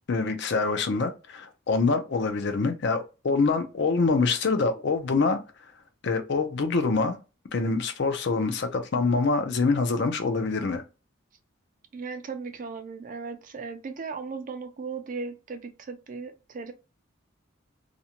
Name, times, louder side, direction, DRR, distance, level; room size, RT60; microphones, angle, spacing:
voice 1, 0.1-5.4 6.0-7.2 7.5-10.8, left 4 dB, 55° left, 0.5 m, -25 dB
voice 2, 11.9-16.7, right 4 dB, 40° right, 0.4 m, -37 dB
2.5 x 2.1 x 2.8 m
head